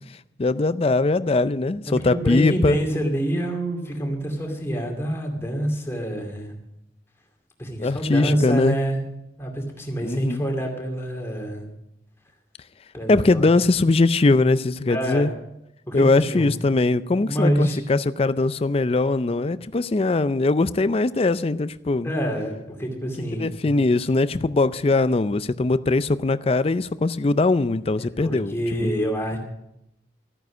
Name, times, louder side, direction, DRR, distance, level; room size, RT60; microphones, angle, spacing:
voice 1, 0.4-2.8 7.8-8.8 10.0-10.4 13.1-15.3 15.9-22.1 23.3-28.9, left 3 dB, 35° left, 15 dB, 0.4 m, -21 dB
voice 2, 1.9-6.5 7.6-9.0 9.4-11.6 12.9-13.5 14.9-15.3 15.9-16.5 17.2-17.8 22.0-23.7 28.0-29.4, equal, 15° left, 1 dB, 2.5 m, -27 dB
13.5 x 9.3 x 6.2 m, 0.85 s
head